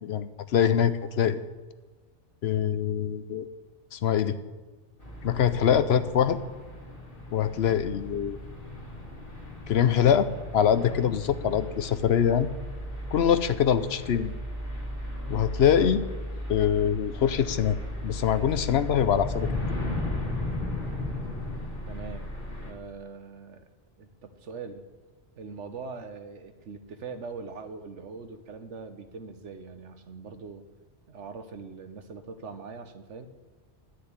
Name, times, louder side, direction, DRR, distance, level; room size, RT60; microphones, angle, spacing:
voice 1, 0.0-1.4 2.4-3.5 3.9-4.4 5.2-6.4 7.3-8.4 9.7-12.5 13.1-14.3 15.3-16.0 16.5-17.8 18.0-19.5, left 8 dB, 65° left, 12 dB, 0.9 m, -24 dB
sound 1, 5.0-22.7, left 1 dB, 50° left, 2.6 m, -36 dB
voice 2, 21.9-23.7 24.0-24.8 25.4-30.6 31.1-33.3, right 4 dB, 90° right, 8 dB, 1.3 m, -42 dB
12.0 x 6.6 x 9.5 m, 1.3 s
omnidirectional pair, 1.2 m